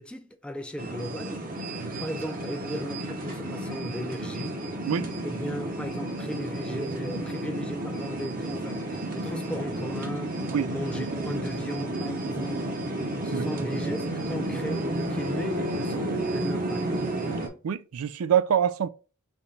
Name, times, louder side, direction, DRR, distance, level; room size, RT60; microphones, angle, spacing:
voice 1, 0.0-1.5 2.0-4.6 5.2-10.4 10.7-12.8 13.2-16.9, equal, 5° left, 0.4 m, -36 dB
sound 1, 0.8-17.5, right 1 dB, 40° right, 0.7 m, -32 dB
voice 2, 17.6-18.9, right 8 dB, 65° right, 0.3 m, -25 dB
3.4 x 2.9 x 4.1 m
head